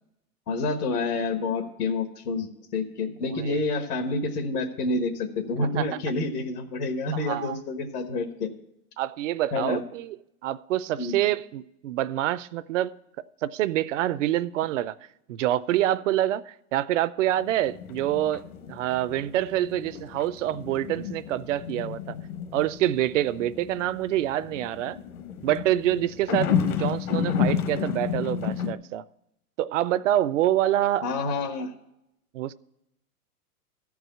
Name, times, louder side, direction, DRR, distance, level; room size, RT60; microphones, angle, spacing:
voice 1, 0.5-8.5 9.5-9.8 11.0-11.1 31.0-31.7, left 3 dB, 85° left, 1.5 m, -28 dB
voice 2, 7.1-7.6 9.0-10.2 10.4-13.0 13.4-15.0 15.3-18.4 18.7-22.2 22.5-25.0 25.4-29.0 29.6-31.1 32.3-32.5, right 13 dB, 55° right, 0.5 m, -26 dB
sound 1, 17.3-28.7, left 8 dB, 65° left, 1.1 m, -31 dB
13.5 x 4.8 x 8.0 m
hypercardioid pair, 135°, 45 cm